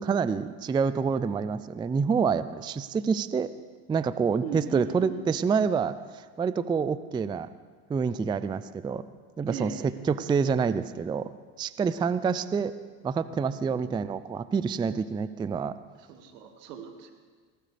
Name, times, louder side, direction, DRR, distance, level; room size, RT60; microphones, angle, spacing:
voice 1, 0.0-3.5 3.9-7.5 7.9-9.0 9.4-11.3 11.6-12.7 13.0-15.8, right 5 dB, 10° right, 15 dB, 0.3 m, -27 dB
voice 2, 4.4-5.2 9.5-9.8 13.7-14.0 16.0-17.1, right 5 dB, 85° right, 4 dB, 2.0 m, -38 dB
19.5 x 17.5 x 3.3 m, 1.5 s
supercardioid pair, 85°, 47 cm